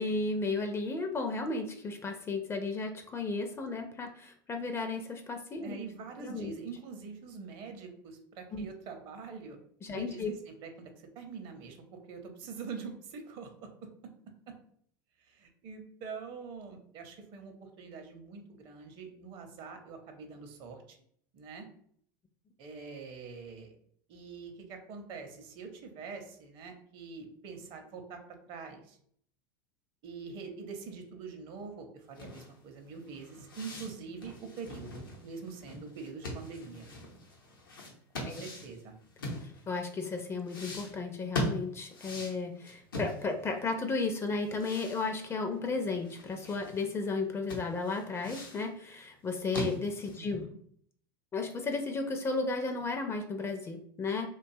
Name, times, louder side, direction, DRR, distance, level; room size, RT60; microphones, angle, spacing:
voice 1, 0.0-5.8 6.2-6.6 8.5-8.7 9.8-10.3 38.2-38.4 39.7-50.4 51.3-54.3, left 3 dB, 25° left, 5 dB, 0.4 m, -34 dB
voice 2, 5.6-9.6 9.9-11.8 12.1-13.9 14.5-14.6 15.2-21.0 21.3-21.7 22.6-23.8 24.1-28.2 28.5-29.0 30.0-36.9 38.2-38.9 50.2-50.6, right 5 dB, 50° right, 5 dB, 0.6 m, -44 dB
sound 1, 32.1-39.9 40.4-43.6 43.9-44.0 44.4-46.8 47.2-47.3 47.5-48.7 49.1-50.3, left 1 dB, 85° left, 0.7 m, -41 dB
2.6 x 2.3 x 2.6 m, 0.63 s
hypercardioid pair, 85°, 11 cm